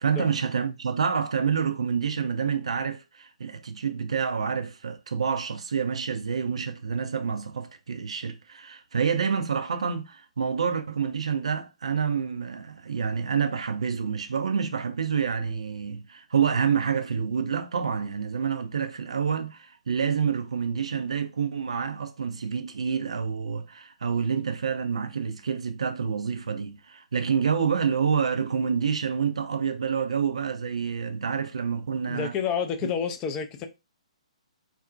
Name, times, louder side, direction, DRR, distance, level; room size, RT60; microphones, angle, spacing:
voice 1, 0.0-32.3, right 6 dB, 60° right, 0.4 m, -28 dB
voice 2, 32.1-33.7, left 7 dB, 20° left, 0.3 m, -29 dB
2.5 x 2.0 x 2.4 m
figure-of-eight pair, 130°, 4 cm